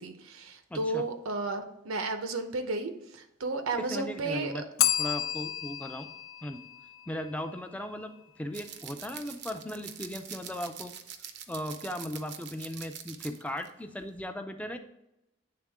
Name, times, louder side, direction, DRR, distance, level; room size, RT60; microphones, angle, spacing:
voice 1, 0.0-4.6, right 3 dB, 85° right, 7 dB, 0.8 m, -33 dB
voice 2, 0.7-1.1 3.7-4.6 5.0-6.1 6.4-6.6 7.1-10.9 11.5-14.8, left 1 dB, 5° left, 7 dB, 0.4 m, -37 dB
Bell, 4.8-7.6, left 11 dB, 85° left, 0.5 m, -31 dB
sound 1, 8.5-13.7 14.0-14.2, right 9 dB, 55° right, 0.5 m, -45 dB
8.7 x 3.6 x 3.5 m, 0.87 s
head